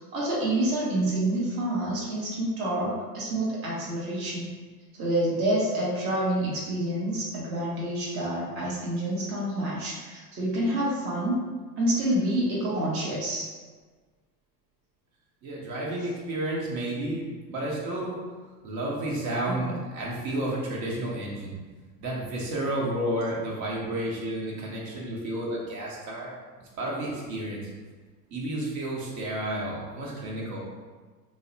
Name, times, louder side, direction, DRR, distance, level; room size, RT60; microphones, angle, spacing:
voice 1, 0.1-4.5 4.9-11.4 11.8-13.5 19.5-19.6, right 1 dB, 30° right, -6 dB, 0.6 m, -28 dB
voice 2, 15.4-18.2 18.6-21.6 22.0-26.4 26.8-27.7 28.3-30.7, right 1 dB, 55° right, -4 dB, 0.9 m, -31 dB
2.7 x 2.0 x 2.6 m, 1.4 s
figure-of-eight pair, 85°, 50 cm